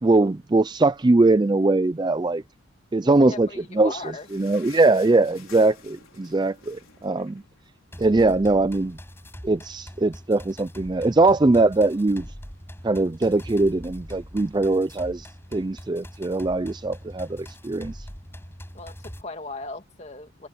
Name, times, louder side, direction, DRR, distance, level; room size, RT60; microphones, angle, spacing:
voice 1, 0.0-2.4 2.9-3.5 3.7-4.0 4.3-7.4 8.0-9.0 9.4-12.3 12.8-15.3 15.5-17.9, right 2 dB, 20° right, 0.4 m, -21 dB
voice 2, 3.0-4.3 18.7-20.5, left 2 dB, 30° left, 2.5 m, -38 dB
sound 1, 3.5-8.2 8.6-8.7 8.9-9.1 9.8-9.9, left 7 dB, 70° left, 5.1 m, -51 dB
sound 2, 7.9-19.2, equal, 10° left, 7.7 m, -42 dB
head